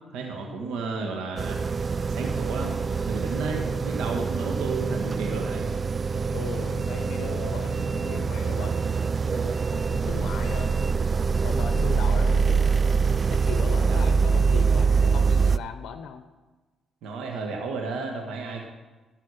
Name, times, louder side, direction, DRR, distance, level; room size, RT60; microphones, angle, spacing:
voice 1, 0.1-1.6 2.1-5.7 13.9-14.0 17.0-18.6, right 4 dB, 85° right, 1 dB, 1.5 m, -33 dB
sound 1, 1.4-15.6, right 5 dB, 35° right, 0.3 m, -24 dB
voice 2, 6.1-9.0 9.3-11.2 11.4-12.8 13.3-16.2, left 7 dB, 80° left, 9 dB, 0.7 m, -38 dB
12.5 x 6.4 x 6.5 m, 1.2 s
cardioid pair, 90°, 0 cm